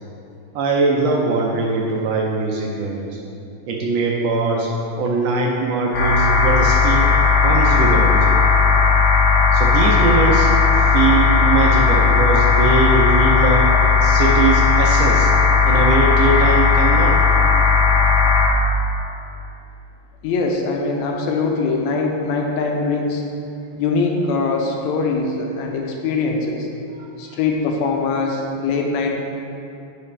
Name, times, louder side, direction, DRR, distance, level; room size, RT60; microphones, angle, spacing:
voice 1, 0.5-3.2 3.7-4.7 5.0-7.1 7.4-8.3 9.5-13.7 14.0-15.3 15.7-17.2 26.9-27.4, right 3 dB, 75° right, -1 dB, 1.6 m, -21 dB
sound 1, 5.9-18.5, left 5 dB, 50° left, 1.7 m, -15 dB
voice 2, 20.2-23.2 23.8-26.7 27.2-29.1, left 4 dB, 80° left, 1 dB, 1.9 m, -22 dB
10.5 x 4.9 x 3.3 m, 2.7 s
omnidirectional pair, 3.3 m